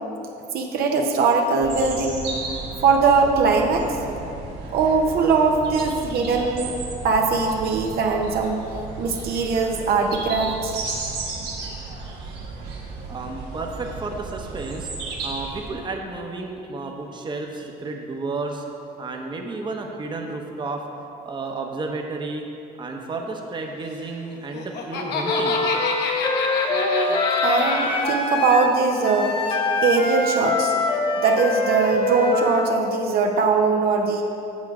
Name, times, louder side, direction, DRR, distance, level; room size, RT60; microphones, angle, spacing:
voice 1, 0.5-2.2 2.8-4.0 4.7-6.7 7.0-8.6 9.0-10.8 26.7-30.7 31.2-34.2, right 4 dB, 65° right, 2 dB, 0.8 m, -21 dB
sound 1, 1.6-15.7, right 3 dB, 90° right, 1.5 m, -34 dB
voice 2, 13.1-14.9 15.2-18.6 19.0-20.8 21.2-22.5 22.8-25.6 26.0-26.3, right 3 dB, 25° right, 2 dB, 0.9 m, -32 dB
Laughter, 24.3-28.1, left 4 dB, 80° left, 1.0 m, -27 dB
Wind instrument woodwind instrument, 25.2-32.7, left 3 dB, 30° left, 0.8 m, -24 dB
8.4 x 6.3 x 4.8 m, 2.7 s
cardioid pair, 110°, 17 cm